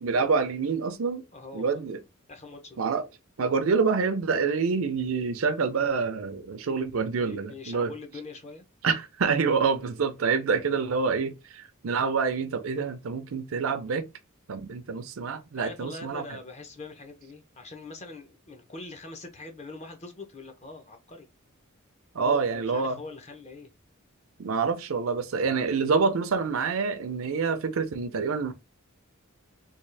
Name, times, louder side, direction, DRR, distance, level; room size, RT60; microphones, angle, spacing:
voice 1, 0.0-1.2 1.5-2.0 2.8-3.0 3.4-7.9 8.8-14.0 14.5-16.2 22.1-23.0 24.4-28.5, right 5 dB, 70° right, 0.5 m, -27 dB
voice 2, 1.3-1.8 2.3-2.8 7.1-8.7 15.6-21.3 22.2-23.7, left 3 dB, 30° left, 0.7 m, -43 dB
3.5 x 2.4 x 3.2 m
head